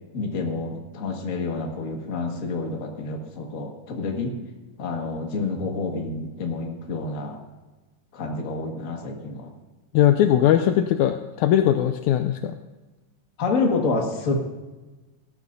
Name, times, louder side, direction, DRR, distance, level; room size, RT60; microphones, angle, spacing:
voice 1, 0.1-4.3 4.8-7.4 8.1-9.5 13.4-14.4, left 3 dB, 35° left, 1 dB, 1.4 m, -28 dB
voice 2, 9.9-12.6, left 11 dB, 80° left, 7 dB, 1.8 m, -20 dB
18.0 x 13.0 x 2.6 m, 1.2 s
omnidirectional pair, 3.6 m